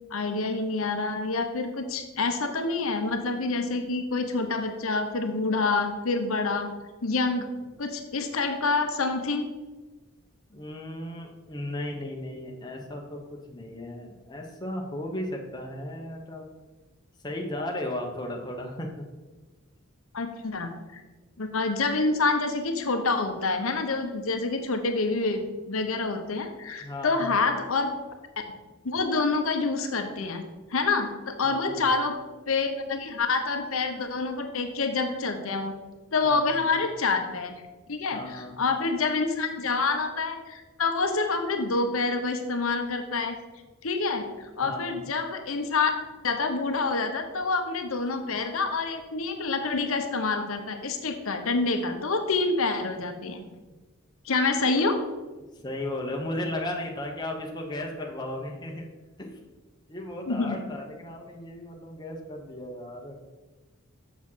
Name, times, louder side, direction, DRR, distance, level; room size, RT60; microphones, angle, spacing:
voice 1, 0.1-6.7 7.0-7.5 7.8-9.5 20.1-21.0 21.4-27.9 28.8-30.4 30.7-32.2 32.5-35.7 36.1-37.5 37.9-43.4 43.8-45.9 46.2-53.5 54.2-55.0 60.3-60.5, left 3 dB, 75° left, 6 dB, 0.9 m, -27 dB
voice 2, 10.5-13.2 13.5-16.5 17.2-19.1 26.8-27.4 31.4-31.9 36.2-36.6 38.1-38.6 44.6-44.9 55.5-58.9 59.2-59.3 59.9-63.2, left 1 dB, 20° left, 0 dB, 1.1 m, -35 dB
7.3 x 6.2 x 5.6 m, 1.2 s
head